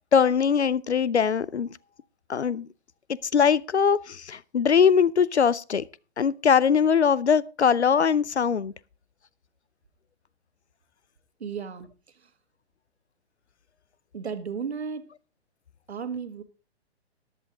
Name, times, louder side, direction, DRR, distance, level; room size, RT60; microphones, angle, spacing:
voice 1, 0.1-1.7 2.3-2.7 3.1-5.9 6.2-8.7, left 7 dB, 85° left, 0.7 m, -21 dB
voice 2, 11.4-11.9 12.2-12.3 14.1-15.1 15.9-16.4, right 6 dB, 75° right, 1.7 m, -34 dB
14.0 x 11.0 x 3.7 m
figure-of-eight pair, 120°, 33 cm